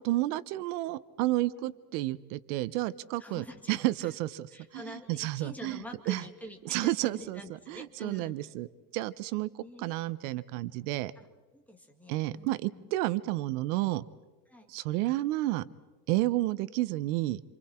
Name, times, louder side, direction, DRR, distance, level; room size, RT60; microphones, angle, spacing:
voice 1, 0.0-4.3 4.7-5.8 6.1-6.2 6.7-7.4 7.7-8.7 8.9-11.1 12.1-14.0 14.7-15.7 16.1-17.4, right 17 dB, 75° right, 17 dB, 0.8 m, -31 dB
voice 2, 3.2-4.1 4.5-8.5 9.6-9.9 11.2-11.3 11.5-12.9 14.5-14.7, left 1 dB, 5° left, 2 dB, 2.2 m, -47 dB
28.0 x 27.5 x 4.3 m, 1.3 s
cardioid pair, 160°, 45 cm